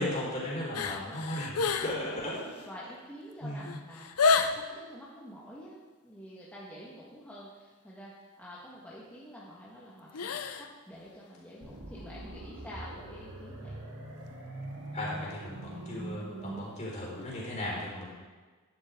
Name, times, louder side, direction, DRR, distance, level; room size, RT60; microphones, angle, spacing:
voice 1, 0.0-2.3 3.4-3.8 14.9-18.1, left 1 dB, 35° left, -5 dB, 4.3 m, -36 dB
sound 1, 0.7-2.0 2.3-2.7 3.3-3.4 3.6-4.7 10.1-10.7 11.0-11.1, left 4 dB, 80° left, 0.7 m, -29 dB
voice 2, 0.8-1.2 2.0-13.8 17.9-18.1, equal, 5° left, -8 dB, 1.5 m, -48 dB
sound 2, 11.6-16.6, right 1 dB, 85° right, 3.1 m, -42 dB
12.5 x 10.5 x 3.7 m, 1.3 s
head